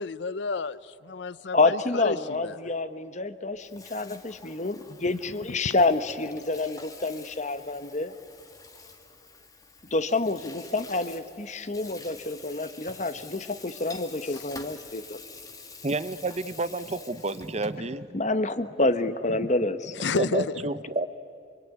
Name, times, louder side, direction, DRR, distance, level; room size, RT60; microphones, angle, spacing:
voice 1, 0.0-2.6 14.3-14.4 20.0-20.6, left 4 dB, 60° left, 16 dB, 0.6 m, -31 dB
voice 2, 1.5-8.1 9.9-15.2 18.1-20.0, left 2 dB, 35° left, 12 dB, 1.1 m, -28 dB
Water tap faucet / Sink (filling or washing), 3.5-17.9, left 4 dB, 20° left, 1.9 m, -47 dB
voice 3, 15.8-18.1 20.2-21.1, right 2 dB, 35° right, 14 dB, 0.8 m, -30 dB
26.0 x 24.0 x 9.4 m, 2.6 s
head